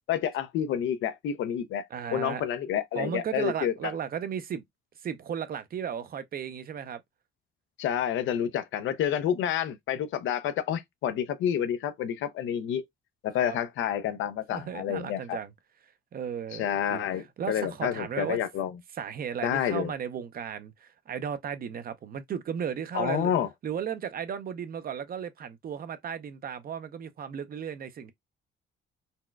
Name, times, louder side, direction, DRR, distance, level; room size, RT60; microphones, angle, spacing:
voice 1, 0.1-1.8 2.1-3.7 7.8-12.8 13.2-15.4 16.5-18.7 19.4-19.9 22.9-23.5, left 9 dB, 75° left, 0.5 m, -29 dB
voice 2, 1.9-2.4 2.9-4.6 5.0-7.0 13.4-13.6 14.5-15.5 16.1-18.4 19.0-23.3 23.6-28.1, right 8 dB, 50° right, 0.5 m, -35 dB
4.1 x 2.2 x 2.2 m
cardioid pair, 90°, 20 cm